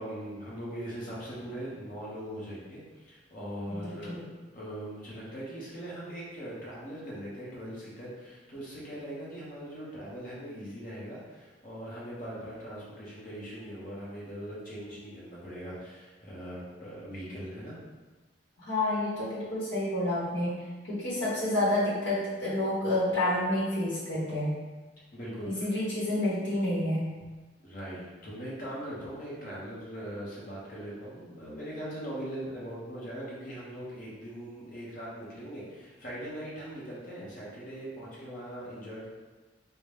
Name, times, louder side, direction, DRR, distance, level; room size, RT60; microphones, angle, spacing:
voice 1, 0.0-4.2 4.5-17.7 25.1-25.7 27.6-39.1, equal, 45° left, -7 dB, 1.1 m, -40 dB
voice 2, 3.7-4.2 18.7-24.5 25.4-27.0, left 1 dB, 75° left, -8 dB, 1.1 m, -29 dB
3.8 x 2.2 x 3.4 m, 1.2 s
head